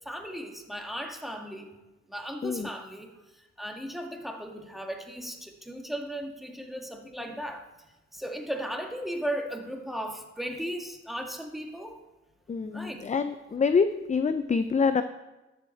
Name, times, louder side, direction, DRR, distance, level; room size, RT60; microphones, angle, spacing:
voice 1, 0.1-1.7 2.1-3.1 3.6-7.6 8.1-12.0 12.7-13.1, equal, ahead, 3 dB, 1.8 m, -36 dB
voice 2, 12.5-15.0, left 5 dB, 25° left, 11 dB, 0.5 m, -26 dB
12.5 x 7.2 x 4.4 m, 1.1 s
supercardioid pair, 60°, 31 cm